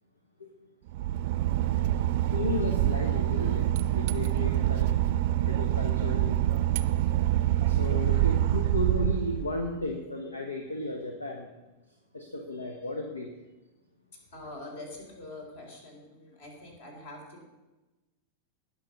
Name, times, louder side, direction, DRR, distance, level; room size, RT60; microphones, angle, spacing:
Boat Water vehicle / Engine, 0.9-9.9, right 13 dB, 50° right, 0.6 m, -26 dB
voice 1, 1.6-2.4 8.0-8.3 14.1-17.4, left 2 dB, 60° left, 0 dB, 4.3 m, -46 dB
voice 2, 2.3-3.7 3.9-4.9 5.5-6.3 7.4-11.5 12.1-13.3, left 2 dB, 80° left, 3 dB, 1.2 m, -34 dB
19.0 x 6.4 x 5.5 m, 1.1 s
figure-of-eight pair, 90°, 0 cm